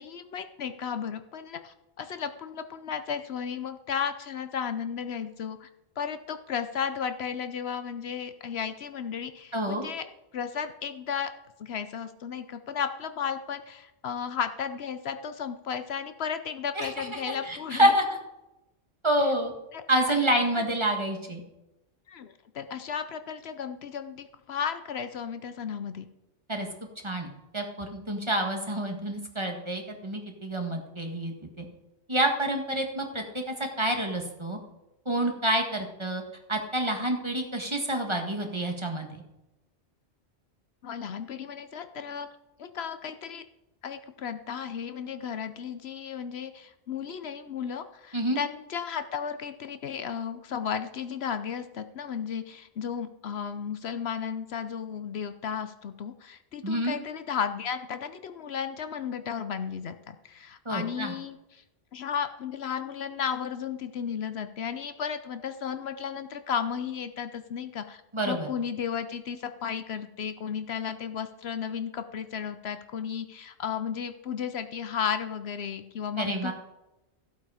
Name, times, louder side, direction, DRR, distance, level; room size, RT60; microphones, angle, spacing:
voice 1, 0.0-5.7 6.0-10.0 10.3-11.3 11.6-17.9 19.7-20.2 22.1-26.1 40.8-42.3 42.6-43.4 43.8-61.6 61.9-76.5, left 7 dB, 70° left, 10 dB, 0.9 m, -34 dB
voice 2, 9.5-9.9 16.8-18.2 19.0-19.5 19.9-21.4 26.5-26.7 27.0-27.3 27.5-31.7 32.1-34.6 35.1-36.2 36.5-39.1 48.1-48.4 56.6-57.0 60.7-61.2 68.1-68.5 76.2-76.5, right 1 dB, 25° right, 3 dB, 1.8 m, -28 dB
14.5 x 8.2 x 4.9 m, 0.96 s
omnidirectional pair, 1.2 m